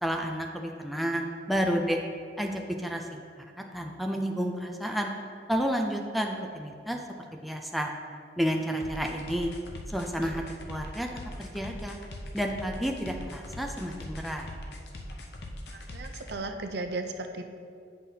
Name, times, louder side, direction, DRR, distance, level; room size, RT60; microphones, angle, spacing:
voice 1, 0.0-2.0 2.4-5.1 5.5-7.0 7.3-7.9 8.4-9.5 9.9-10.4 10.7-11.1 11.4-12.0 12.3-14.5, equal, ahead, 1 dB, 0.4 m, -31 dB
sound 1, 8.8-16.4, left 1 dB, 65° left, 0.7 m, -41 dB
voice 2, 15.7-17.5, right 2 dB, 65° right, 6 dB, 0.5 m, -35 dB
9.0 x 5.5 x 2.8 m, 2.3 s
head